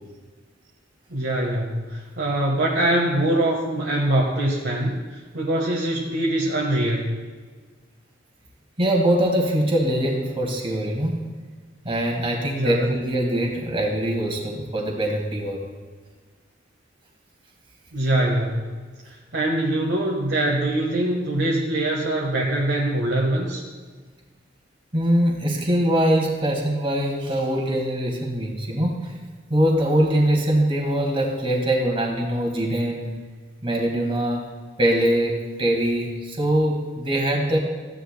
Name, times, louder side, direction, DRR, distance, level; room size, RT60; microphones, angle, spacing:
voice 1, 1.1-7.2 12.6-12.9 17.9-18.6 19.3-23.6, right 1 dB, 65° right, -4 dB, 1.4 m, -23 dB
voice 2, 8.8-11.3 11.8-15.6 24.9-29.2 29.5-33.2 33.6-34.5 34.8-37.6, right 1 dB, 30° right, 0 dB, 1.9 m, -22 dB
15.0 x 10.5 x 2.2 m, 1.5 s
head